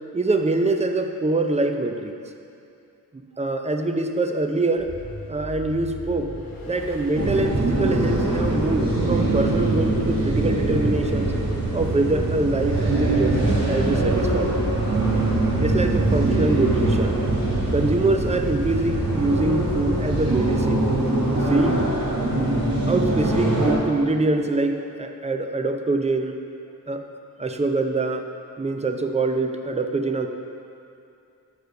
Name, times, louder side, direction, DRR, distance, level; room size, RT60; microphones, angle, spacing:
voice 1, 0.1-2.1 3.1-4.9 5.3-6.3 6.7-11.3 11.7-13.4 13.7-14.6 15.6-17.2 17.7-20.9 21.5-21.9 22.9-26.4 26.9-27.0 27.4-28.2 28.6-30.3, right 2 dB, 20° right, 5 dB, 0.4 m, -24 dB
Vehicle, 4.7-20.7, left 2 dB, 75° left, 1.2 m, -38 dB
sound 1, 7.1-23.8, right 2 dB, 75° right, 1.2 m, -23 dB
6.4 x 4.9 x 5.2 m, 2.6 s
wide cardioid pair, 85°, 34 cm